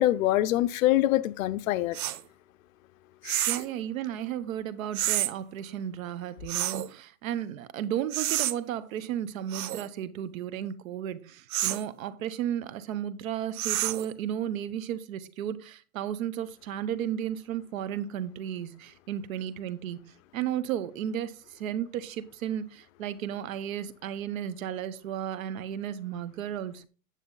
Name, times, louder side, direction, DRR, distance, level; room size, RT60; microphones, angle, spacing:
voice 1, 0.0-2.0 3.2-3.5, left 14 dB, 70° left, 0.7 m, -25 dB
sound 1, 1.9-2.2 3.2-3.7 4.9-5.3 6.5-6.9 8.1-8.5 9.5-9.9 11.5-11.8 13.6-14.1, right 14 dB, 90° right, 0.8 m, -29 dB
voice 2, 3.5-26.9, right 10 dB, 70° right, 1.1 m, -34 dB
9.3 x 7.1 x 3.9 m
supercardioid pair, 155°, 42 cm